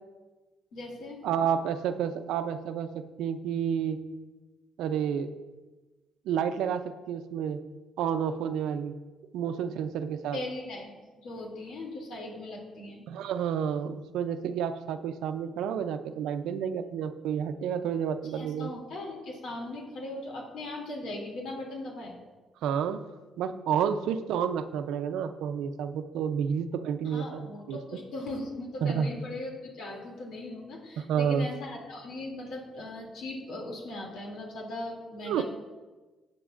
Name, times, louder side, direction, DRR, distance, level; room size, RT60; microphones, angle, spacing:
voice 1, 0.7-1.2 10.3-10.9 11.2-13.0 18.2-22.2 27.0-35.4, left 2 dB, 75° left, -1 dB, 2.8 m, -39 dB
voice 2, 1.2-4.0 4.8-5.3 6.3-7.6 8.0-8.9 9.3-10.4 13.1-18.7 22.6-23.0 23.4-27.8 28.8-29.1 31.0-31.4 35.2-35.4, right 8 dB, 90° right, 10 dB, 0.6 m, -30 dB
15.0 x 9.0 x 2.5 m, 1.2 s
cardioid pair, 90°, 0 cm